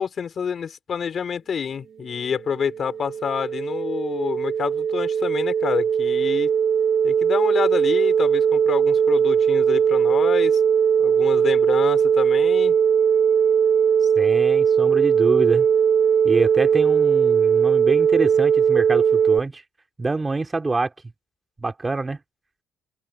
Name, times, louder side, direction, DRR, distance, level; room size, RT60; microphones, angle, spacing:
voice 1, 0.0-6.6 7.0-10.6 11.0-12.8, left 7 dB, 40° left, 6.4 m, -28 dB
sound 1, 2.4-19.4, right 7 dB, 50° right, 0.6 m, -19 dB
voice 2, 14.2-15.7 16.2-19.6 20.0-20.9 21.6-22.2, right 3 dB, 20° right, 3.6 m, -25 dB
open air
cardioid pair, 115°, 0 cm